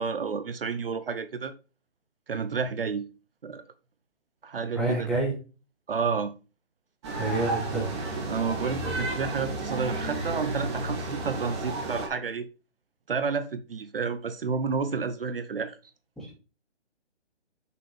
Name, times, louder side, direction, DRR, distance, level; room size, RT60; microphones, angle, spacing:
voice 1, 0.0-1.5 2.3-3.0 3.4-3.6 4.4-5.1 5.9-6.3 8.3-12.5 13.1-15.8, right 5 dB, 50° right, 0.8 m, -30 dB
voice 2, 4.7-5.4 7.2-7.9 16.2-16.3, right 3 dB, ahead, 1.4 m, -28 dB
sound 1, 7.0-12.1, right 2 dB, 25° right, 2.2 m, -32 dB
7.3 x 6.8 x 3.3 m
hypercardioid pair, 170°, 35 cm